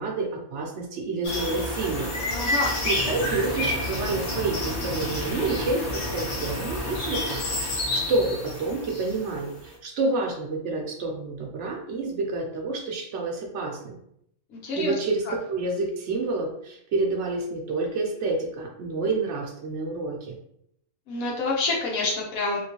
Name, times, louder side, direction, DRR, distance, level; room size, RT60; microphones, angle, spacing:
voice 1, 0.0-2.1 2.8-14.0 14.8-15.2 15.5-20.4, right 3 dB, 65° right, 1 dB, 0.8 m, -29 dB
sound 1, 1.2-9.5, left 1 dB, 65° left, 1.1 m, -30 dB
voice 2, 2.3-2.7 14.6-14.9 15.3-15.4 21.1-22.6, left 3 dB, 80° left, -2 dB, 1.3 m, -27 dB
sound 2, 3.0-9.4, left 1 dB, 30° left, 1.0 m, -38 dB
3.0 x 3.0 x 2.8 m, 0.73 s
omnidirectional pair, 1.4 m